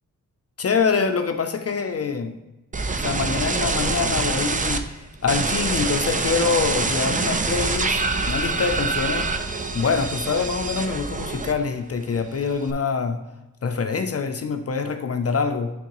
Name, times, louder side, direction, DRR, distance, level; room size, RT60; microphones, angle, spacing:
voice 1, 0.6-2.4 3.0-9.4 9.7-13.2 13.6-15.7, left 5 dB, 45° left, 7 dB, 0.5 m, -25 dB
sound 1, 2.7-4.8 5.3-11.8 12.1-12.7, right 3 dB, 25° right, 0.4 m, -25 dB
9.6 x 3.7 x 3.0 m, 1.0 s
wide cardioid pair, 135°, 34 cm